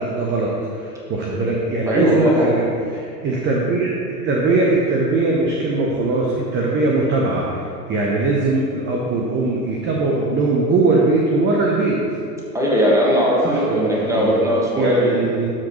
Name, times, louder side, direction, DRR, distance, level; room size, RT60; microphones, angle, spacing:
voice 1, 0.0-2.7 2.9-12.0 13.4-14.4 14.8-15.5, right 3 dB, 25° right, -2 dB, 0.9 m, -20 dB
voice 2, 1.9-2.5 12.5-15.2, equal, 5° right, -4 dB, 1.7 m, -19 dB
12.5 x 5.0 x 3.2 m, 2.4 s
hypercardioid pair, 105°, 49 cm